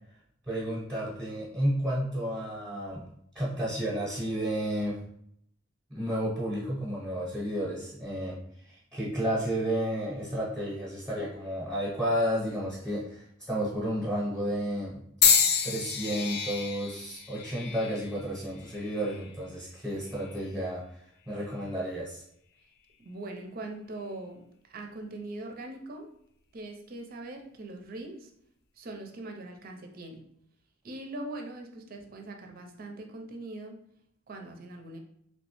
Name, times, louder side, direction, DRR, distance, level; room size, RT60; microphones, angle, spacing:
voice 1, 0.5-3.0 3.3-5.0 5.9-8.4 8.6-14.9 15.6-20.8 21.3-22.2, equal, 10° right, -6 dB, 0.9 m, -32 dB
sound 1, 15.2-19.3 20.1-20.5 21.4-21.6, left 7 dB, 50° left, 0.4 m, -28 dB
voice 2, 23.0-26.1 26.5-28.3 28.8-30.2 30.8-33.8 34.3-35.0, right 2 dB, 45° right, 3 dB, 0.5 m, -41 dB
3.2 x 3.1 x 3.1 m, 0.70 s
head